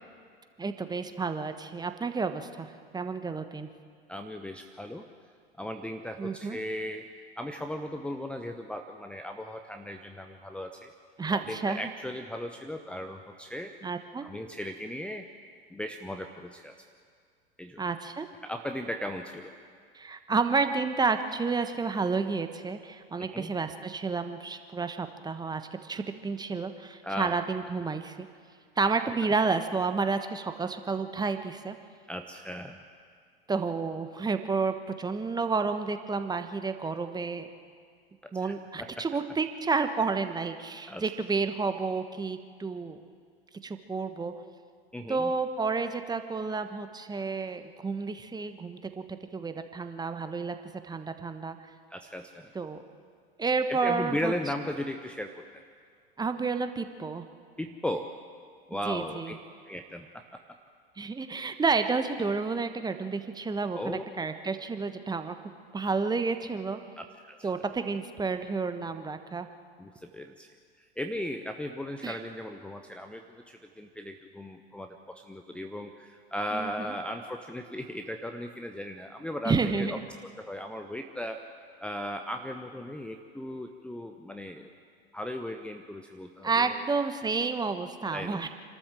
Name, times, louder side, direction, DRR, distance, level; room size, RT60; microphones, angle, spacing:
voice 1, 0.6-2.7 2.9-3.7 6.2-6.6 11.2-11.8 13.8-14.3 17.8-18.3 19.9-28.3 28.8-31.8 33.5-37.5 38.3-43.0 43.6-44.3 45.1-50.5 50.8-51.6 52.5-52.8 53.4-54.3 56.2-57.2 58.8-59.3 61.0-65.3 65.7-66.8 67.4-69.5 72.0-72.2 76.5-76.9 79.4-80.0 86.4-88.5, right 4 dB, 15° right, 8 dB, 1.3 m, -30 dB
voice 2, 4.1-5.1 5.6-10.9 11.3-13.7 14.2-15.3 15.7-16.7 17.6-17.8 18.4-19.5 23.2-23.5 27.0-27.4 32.1-32.8 38.2-38.5 38.8-39.0 40.9-41.0 44.9-45.3 51.9-52.5 53.7-55.6 57.6-58.1 58.7-59.3 59.7-60.2 63.7-64.3 67.0-67.5 69.8-70.5 71.0-80.0 80.4-81.4 81.8-84.7 85.1-86.8 88.1-88.5, left 1 dB, 5° left, 5 dB, 1.0 m, -37 dB
27.5 x 13.0 x 7.5 m, 2.1 s
figure-of-eight pair, 85°, 30 cm